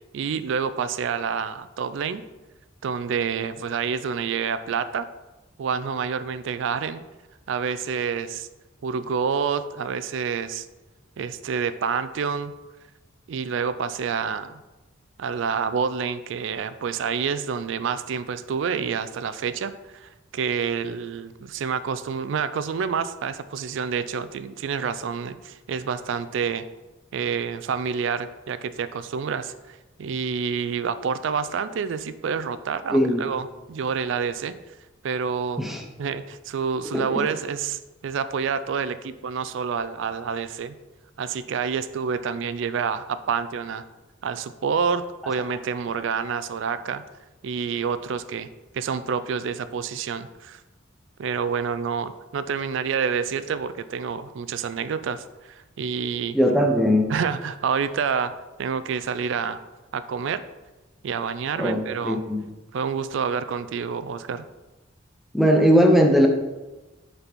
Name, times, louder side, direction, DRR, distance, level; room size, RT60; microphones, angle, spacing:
voice 1, 0.1-2.2 2.8-5.1 5.6-7.0 7.5-8.5 8.8-10.7 11.2-12.5 13.3-14.6 15.2-26.7 27.1-34.6 35.0-35.6 36.0-40.8 41.2-43.8 44.2-47.0 47.4-48.5 48.7-50.6 51.2-56.4 57.1-59.6 59.9-60.4 61.0-62.2 62.7-64.4, right 6 dB, 65° right, 14 dB, 0.3 m, -28 dB
voice 2, 32.9-33.3 35.6-35.8 36.9-37.2 56.3-57.1 61.6-62.5 65.3-66.3, equal, ahead, 2 dB, 0.6 m, -19 dB
6.6 x 4.1 x 4.5 m, 1.1 s
head